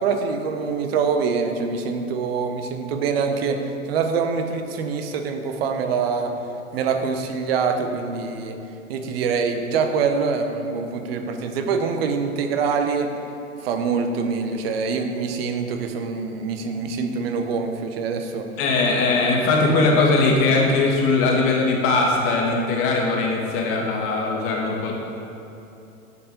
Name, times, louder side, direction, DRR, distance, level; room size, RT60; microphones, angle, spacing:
voice 1, 0.0-3.6 3.9-6.3 6.7-8.6 8.9-13.1 13.6-18.5, right 5 dB, 45° right, 6 dB, 1.1 m, -24 dB
voice 2, 18.6-24.9, left 3 dB, 30° left, -1 dB, 2.2 m, -20 dB
9.8 x 7.9 x 5.4 m, 2.9 s
figure-of-eight pair, 105°, 42 cm